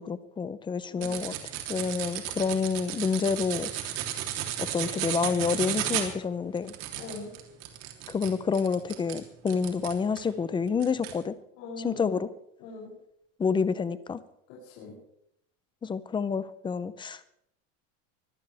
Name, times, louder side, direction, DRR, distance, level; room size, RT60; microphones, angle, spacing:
voice 1, 0.0-1.3 1.7-3.9 4.7-6.7 8.1-11.3 11.8-12.3 13.4-14.2 15.8-17.2, left 5 dB, 10° left, 14 dB, 0.6 m, -28 dB
voice 2, 0.9-1.2 7.0-7.3 11.6-12.2 12.6-12.9 14.5-15.0, left 3 dB, 55° left, -5 dB, 7.5 m, -41 dB
sound 1, 1.0-10.3 10.8-11.2, right 12 dB, 60° right, 3.4 m, -34 dB
23.5 x 16.5 x 3.5 m, 0.77 s
supercardioid pair, 150°, 39 cm